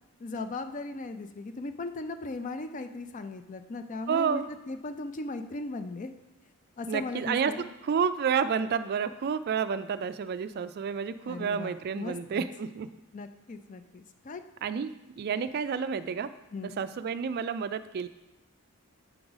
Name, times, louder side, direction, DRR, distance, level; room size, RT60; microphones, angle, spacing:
voice 1, 0.2-6.1 6.8-7.7 11.2-12.4 13.1-14.4 16.5-16.8, left 3 dB, 35° left, 9 dB, 0.4 m, -37 dB
voice 2, 4.1-4.5 6.9-12.9 14.6-16.3 16.8-18.1, right 6 dB, 45° right, 13 dB, 0.3 m, -30 dB
7.9 x 4.8 x 3.9 m, 0.98 s
head